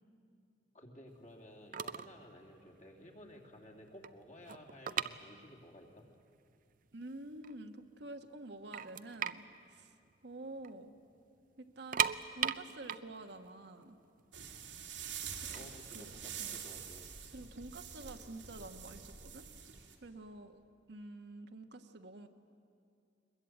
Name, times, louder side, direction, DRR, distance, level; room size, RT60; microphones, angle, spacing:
voice 1, 0.7-6.1 15.5-17.1, left 1 dB, 40° left, 0 dB, 3.0 m, -54 dB
sound 1, 1.5-1.6 1.7-2.2 2.5-2.7 3.2-3.3 3.6-5.8 6.1-6.2 6.8-6.9 7.3-8.0 8.4-8.5 8.7-10.7 11.0-11.1 11.7-14.6 15.3-17.1, right 9 dB, 50° right, 0.5 m, -37 dB
voice 2, 6.9-9.4 9.7-9.9 10.2-10.9 11.6-14.0 15.6-16.1 16.4-16.6 17.3-19.4 20.0-20.6 20.9-22.3, right 2 dB, 65° right, 6 dB, 1.3 m, -48 dB
sound 2, 14.3-19.9, right 7 dB, 90° right, 2.8 m, -46 dB
22.5 x 21.5 x 8.9 m, 2.4 s
head